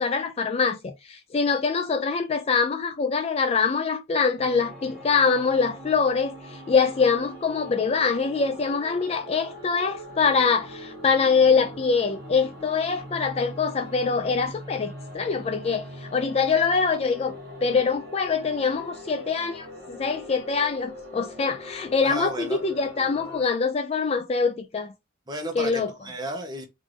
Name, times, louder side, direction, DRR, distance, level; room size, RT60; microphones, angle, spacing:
voice 1, 0.0-17.4 17.6-24.9 25.6-25.9, left 5 dB, 30° left, 0.3 m, -24 dB
sound 1, 4.4-23.4, equal, 50° right, 1.3 m, -41 dB
voice 2, 22.0-22.6 25.3-26.7, right 1 dB, 20° right, 0.7 m, -33 dB
3.5 x 2.5 x 3.2 m
head